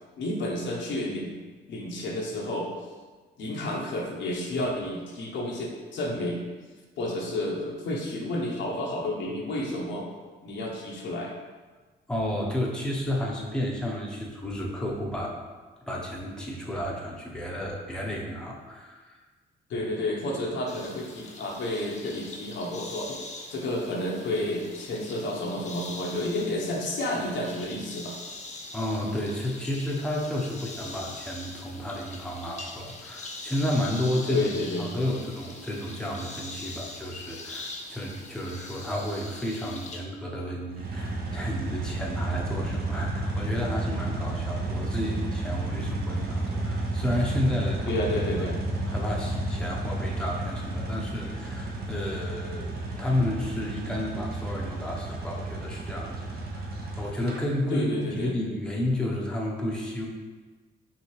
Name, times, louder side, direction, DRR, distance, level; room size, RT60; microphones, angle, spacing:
voice 1, 0.2-1.4 1.7-2.7 3.4-6.5 7.0-10.1 10.4-11.3 19.7-23.2 23.5-28.2 34.3-34.9 47.9-48.6 57.7-58.3, left 1 dB, 70° left, -2 dB, 1.0 m, -31 dB
voice 2, 12.1-15.4 15.9-19.2 28.7-34.4 34.8-48.0 48.9-60.1, left 1 dB, 5° left, -3 dB, 0.8 m, -31 dB
sound 1, 20.7-40.0, left 2 dB, 35° left, 0.8 m, -43 dB
sound 2, 40.7-57.4, right 2 dB, 50° right, 0.8 m, -32 dB
5.8 x 2.8 x 3.2 m, 1.3 s
cardioid pair, 90°, 20 cm